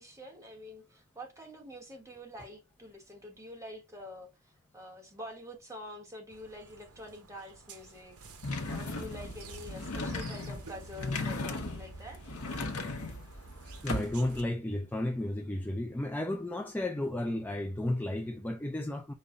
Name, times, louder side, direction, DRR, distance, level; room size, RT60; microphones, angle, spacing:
voice 1, 0.0-8.2 8.7-12.2, left 1 dB, 15° right, 1.2 m, -47 dB
sound 1, 6.3-14.4, right 5 dB, 75° right, 0.8 m, -53 dB
sound 2, 8.4-14.4, left 2 dB, 80° left, 0.9 m, -37 dB
voice 2, 13.7-19.1, left 1 dB, 10° left, 0.3 m, -33 dB
5.4 x 2.2 x 3.6 m
head